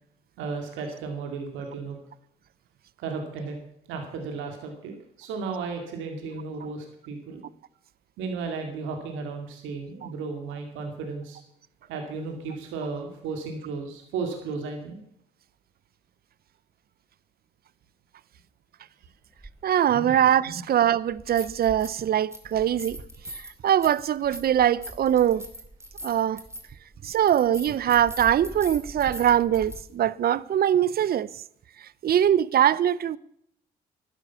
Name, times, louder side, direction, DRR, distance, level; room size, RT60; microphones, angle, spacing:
voice 1, 0.4-2.0 3.0-3.6 3.9-7.4 8.2-11.4 11.9-15.0 19.9-20.1 20.4-20.6, right 4 dB, 80° right, 2.4 m, -34 dB
sound 1, 19.4-19.5 21.1-22.0 22.3-29.8, right 1 dB, 15° right, 2.7 m, -41 dB
voice 2, 19.6-23.0 23.3-25.5 26.0-26.4 27.0-31.3 32.0-33.2, right 10 dB, 50° right, 0.6 m, -22 dB
11.5 x 10.0 x 7.0 m
supercardioid pair, 60°, 20 cm